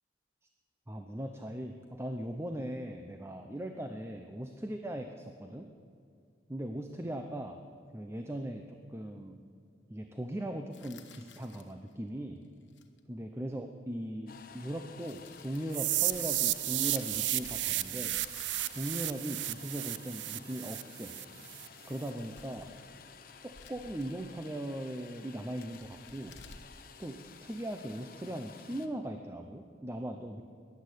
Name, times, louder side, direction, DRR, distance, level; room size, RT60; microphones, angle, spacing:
voice 1, 0.9-5.7 6.5-7.6 7.9-9.4 9.9-12.4 13.1-18.1 18.7-21.1 21.9-22.7 23.4-26.3 27.0-30.4, right 1 dB, 15° right, 5 dB, 0.6 m, -39 dB
sound 1, 10.7-11.9 12.6-13.0 14.4-14.5 15.0-17.8 18.1-20.0 21.9-22.9 23.2-24.3 25.7-27.7, left 5 dB, 85° left, 1.1 m, -55 dB
sound 2, 14.3-28.9, left 6 dB, 55° left, 1.0 m, -53 dB
sound 3, 15.7-21.7, right 15 dB, 80° right, 0.5 m, -33 dB
14.0 x 10.5 x 8.3 m, 2.3 s
head